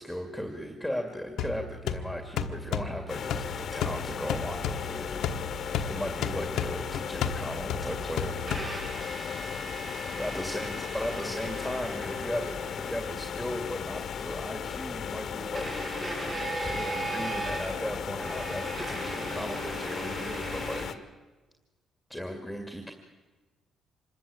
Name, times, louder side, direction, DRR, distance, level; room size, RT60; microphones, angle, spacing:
voice 1, 0.0-5.1 5.9-8.4 10.2-15.7 16.6-20.9 22.1-22.9, equal, ahead, 4 dB, 2.2 m, -36 dB
sound 1, 1.4-9.1, left 7 dB, 80° left, 1.2 m, -34 dB
sound 2, 3.1-21.0, left 7 dB, 60° left, 1.3 m, -36 dB
sound 3, 7.2-7.3 8.3-14.2 15.5-20.8, right 2 dB, 35° right, 7.4 m, -38 dB
25.5 x 13.5 x 8.8 m, 1.2 s
cardioid pair, 90°, 0 cm